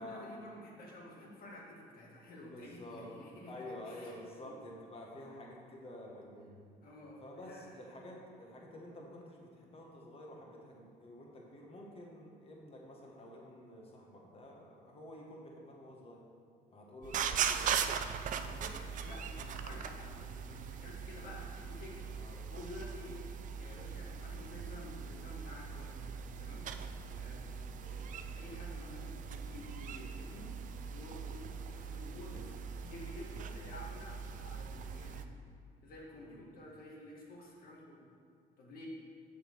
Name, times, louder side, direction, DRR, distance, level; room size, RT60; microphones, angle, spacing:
voice 1, 0.0-4.1 4.4-4.5 6.8-7.8 18.4-23.3 23.6-26.7 27.1-27.4 27.8-30.6 30.9-35.3 35.8-38.0 38.6-38.9, left 1 dB, 60° left, -2 dB, 1.9 m, -51 dB
voice 2, 2.5-3.1 3.5-6.5 7.2-16.2 16.7-17.7 22.1-22.5 27.0-27.3 36.2-36.4, left 1 dB, 35° left, -1 dB, 1.5 m, -50 dB
sound 1, 17.0-35.2, right 7 dB, 50° right, 0.5 m, -40 dB
7.3 x 6.4 x 4.7 m, 2.3 s
cardioid pair, 110°, 17 cm